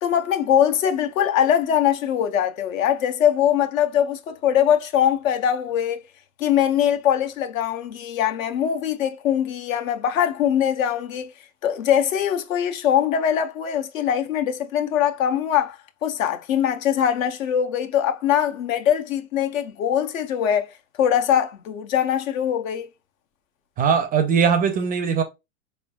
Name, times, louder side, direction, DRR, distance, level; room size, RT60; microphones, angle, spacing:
voice 1, 0.0-6.0 6.4-11.3 11.6-22.9, left 9 dB, 70° left, 0.8 m, -22 dB
voice 2, 23.8-25.2, right 6 dB, 20° right, 0.4 m, -20 dB
4.1 x 3.3 x 2.3 m
hypercardioid pair, 100°, 42 cm